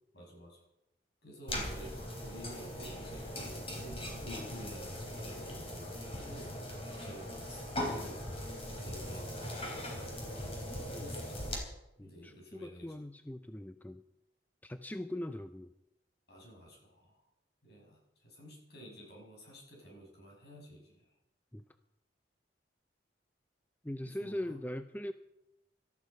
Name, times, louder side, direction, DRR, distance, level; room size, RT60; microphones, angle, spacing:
voice 1, 0.1-0.6 1.2-3.3 3.7-8.2 8.8-10.1 10.9-11.6 12.0-13.0 16.3-17.2 17.6-21.1 24.0-24.6, equal, 60° left, -1 dB, 6.1 m, -51 dB
sound 1, 1.5-11.6, left 1 dB, 30° left, 3.9 m, -40 dB
voice 2, 12.0-14.0 14.6-15.7 21.5-21.6 23.8-25.1, left 1 dB, 10° left, 8 dB, 0.5 m, -41 dB
18.5 x 13.5 x 5.3 m, 0.91 s
head